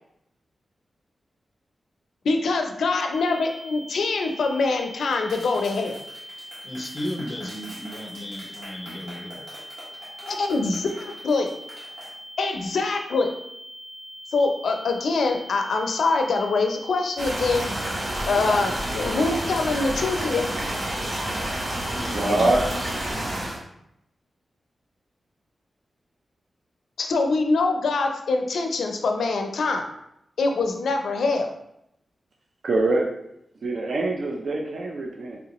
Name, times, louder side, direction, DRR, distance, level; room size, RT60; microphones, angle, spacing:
voice 1, 2.2-6.0 10.3-11.5 12.4-13.3 14.3-17.7 18.3-20.5 27.0-29.9 30.4-31.5, left 3 dB, 90° left, 4 dB, 0.5 m, -24 dB
sound 1, 3.1-23.1, equal, 20° right, 0.8 m, -42 dB
Clapping, 5.3-12.1, right 1 dB, 85° right, 1.4 m, -45 dB
voice 2, 6.6-9.6 10.2-10.4 21.9-23.4, equal, 30° left, 3 dB, 0.4 m, -35 dB
sound 2, 17.2-23.6, right 1 dB, 45° right, 1.0 m, -29 dB
voice 3, 21.9-22.6 32.6-33.1 33.6-35.4, right 2 dB, 60° right, 0 dB, 0.5 m, -24 dB
3.7 x 3.2 x 2.9 m, 0.80 s
wide cardioid pair, 150°, 0 cm